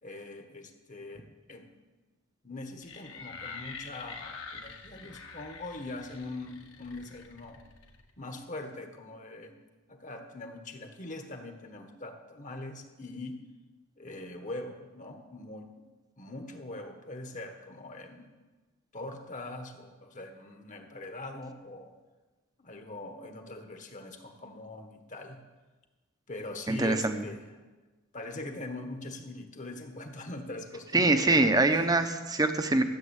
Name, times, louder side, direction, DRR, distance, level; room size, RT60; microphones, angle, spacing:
voice 1, 0.0-1.7 2.4-7.6 8.2-9.6 9.9-13.4 14.0-15.9 16.2-18.4 18.9-21.9 22.6-25.4 26.3-27.5 28.1-32.0, left 2 dB, 35° left, 5 dB, 1.3 m, -42 dB
sound 1, 2.8-8.1, left 4 dB, 70° left, 1.5 m, -46 dB
voice 2, 26.7-27.2 30.9-32.8, right 2 dB, 20° right, 8 dB, 0.9 m, -24 dB
13.5 x 7.8 x 8.2 m, 1.2 s
head